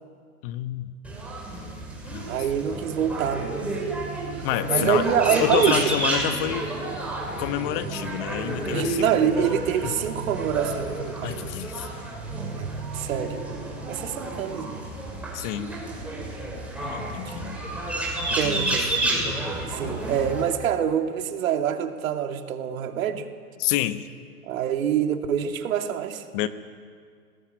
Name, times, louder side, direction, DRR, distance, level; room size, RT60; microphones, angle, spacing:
voice 1, 0.4-0.9 2.1-2.4 4.4-5.1 5.4-6.7 7.4-10.0 11.2-11.9 15.3-15.8 16.8-17.6 18.3-18.8 23.6-24.1 26.3-26.5, left 13 dB, 35° left, 11 dB, 1.3 m, -29 dB
sound 1, 1.0-20.4, right 2 dB, 5° right, 6.3 m, -30 dB
voice 2, 2.3-3.6 4.3-5.9 8.7-11.4 12.6-12.7 12.9-13.4 13.9-14.8 17.3-17.4 18.3-18.9 19.7-23.3 24.4-26.2, right 9 dB, 60° right, 5 dB, 2.7 m, -26 dB
25.0 x 19.0 x 9.2 m, 2.1 s
hypercardioid pair, 130°, 47 cm